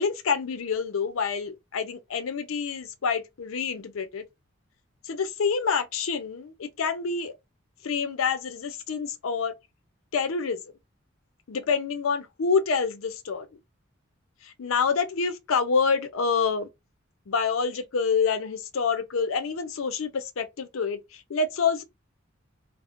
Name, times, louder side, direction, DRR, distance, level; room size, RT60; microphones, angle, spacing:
voice 1, 0.0-4.3 5.0-7.3 7.8-9.5 10.1-10.6 11.5-13.5 14.4-16.7 17.3-21.8, left 5 dB, 80° left, 0.5 m, -27 dB
2.4 x 2.0 x 2.7 m
head